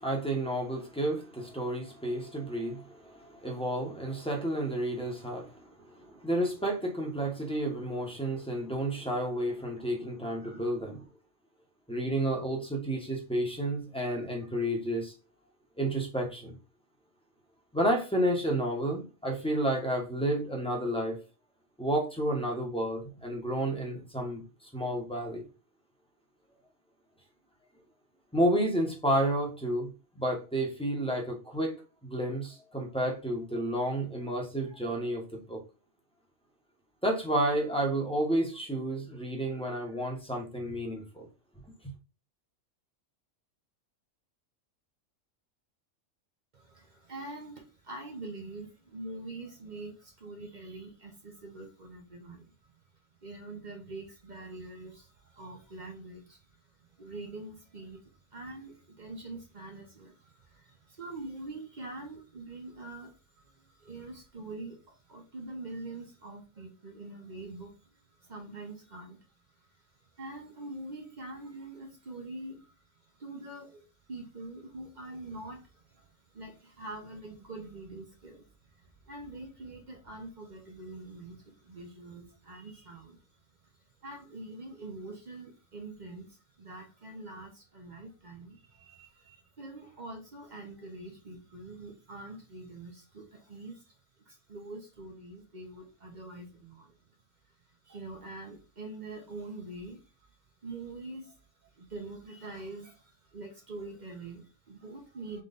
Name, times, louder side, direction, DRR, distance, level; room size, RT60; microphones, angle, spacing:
voice 1, 0.0-11.0 11.9-15.1 15.8-16.6 17.7-21.2 21.8-25.4 28.3-35.6 37.0-41.3, right 1 dB, 5° left, 0.9 m, -31 dB
voice 2, 46.5-52.7 53.2-69.3 69.6-78.5 78.7-83.2 83.6-83.7 84.0-94.0 94.2-97.0 97.8-100.1 100.6-105.4, right 2 dB, 40° right, 0.8 m, -45 dB
3.7 x 3.1 x 3.8 m
omnidirectional pair, 1.3 m